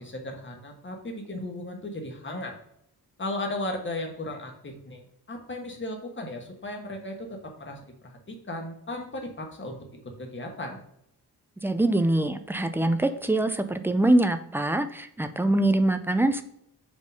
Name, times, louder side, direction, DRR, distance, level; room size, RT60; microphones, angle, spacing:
voice 1, 0.0-2.6 3.2-5.0 5.3-9.8 10.2-10.8, left 1 dB, 30° left, 2 dB, 1.4 m, -36 dB
voice 2, 11.6-16.4, right 1 dB, 5° right, 9 dB, 0.4 m, -24 dB
5.1 x 3.9 x 5.3 m, 0.74 s
wide cardioid pair, 130°, 39 cm